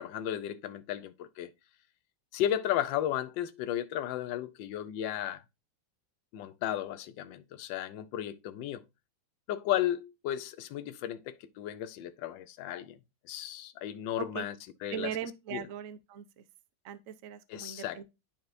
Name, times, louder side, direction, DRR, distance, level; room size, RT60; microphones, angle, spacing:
voice 1, 0.0-1.5 2.3-5.4 6.3-8.8 9.5-13.0 13.2-14.5 14.8-15.1 15.5-15.6 17.5-18.0, left 11 dB, 70° left, 1.3 m, -34 dB
voice 2, 14.9-16.4 16.8-18.0, right 9 dB, 70° right, 0.7 m, -39 dB
10.5 x 4.2 x 2.6 m
omnidirectional pair, 2.3 m